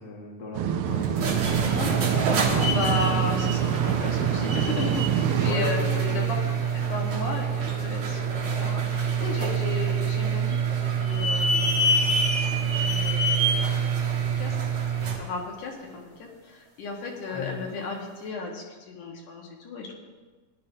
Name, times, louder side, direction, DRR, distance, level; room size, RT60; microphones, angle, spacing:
voice 1, 0.0-1.5 5.4-6.5 12.5-12.6 17.3-17.6, left 3 dB, 40° left, -2 dB, 1.8 m, -36 dB
sound 1, 0.5-5.5, right 9 dB, 80° right, 1.9 m, -27 dB
Squeaky Garage Door Close, 1.0-15.3, right 4 dB, 60° right, 2.7 m, -26 dB
voice 2, 1.7-6.4 6.7-8.2 8.5-11.9 12.8-14.0 14.4-14.6 15.0-19.9, left 3 dB, 75° left, -1 dB, 3.0 m, -34 dB
18.0 x 11.5 x 2.7 m, 1.3 s
omnidirectional pair, 3.6 m